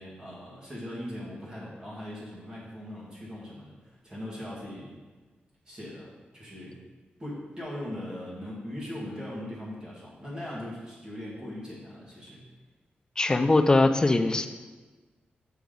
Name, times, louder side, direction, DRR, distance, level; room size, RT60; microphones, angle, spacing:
voice 1, 0.0-5.0 5.7-6.8 7.2-12.5, left 1 dB, 20° right, -7 dB, 2.0 m, -40 dB
voice 2, 13.2-14.5, left 2 dB, 20° left, 7 dB, 0.4 m, -21 dB
7.0 x 5.9 x 3.9 m, 1.3 s
wide cardioid pair, 155°, 4 cm